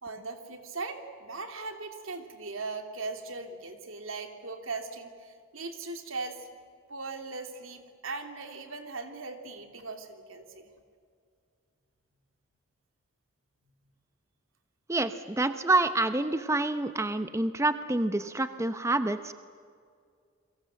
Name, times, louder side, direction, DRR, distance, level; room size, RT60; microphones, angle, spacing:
voice 1, 0.0-6.5 6.9-10.7, right 3 dB, 75° right, 5 dB, 3.1 m, -39 dB
voice 2, 14.9-19.3, right 2 dB, 15° right, 10 dB, 0.7 m, -27 dB
29.5 x 23.0 x 7.7 m, 2.2 s
head